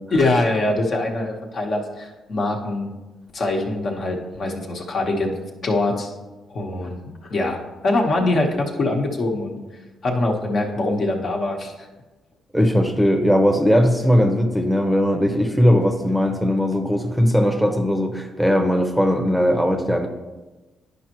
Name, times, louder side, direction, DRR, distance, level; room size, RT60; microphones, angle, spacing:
voice 1, 0.1-2.9 3.3-6.1 6.5-7.6 7.8-9.5 10.0-11.9, left 2 dB, 55° left, 1 dB, 1.2 m, -23 dB
voice 2, 12.5-20.1, equal, ahead, 4 dB, 0.8 m, -19 dB
10.0 x 5.3 x 3.0 m, 1.2 s
cardioid pair, 90°, 0 cm